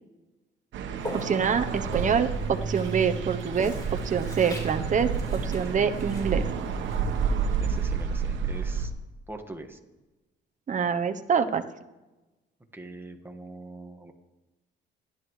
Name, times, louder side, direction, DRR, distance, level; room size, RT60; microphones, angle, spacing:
sound 1, 0.7-8.9, right 6 dB, 75° right, 1.2 m, -30 dB
Walk footsteps, 1.0-8.1, left 1 dB, 20° left, 4.0 m, -43 dB
voice 1, 1.1-3.7 4.0-6.4 10.7-11.6, right 6 dB, 40° right, 8 dB, 0.9 m, -26 dB
voice 2, 7.6-8.9 9.3-9.8 12.7-14.1, right 2 dB, 10° right, 4 dB, 1.6 m, -42 dB
25.5 x 11.0 x 3.2 m, 1.1 s
cardioid pair, 90°, 20 cm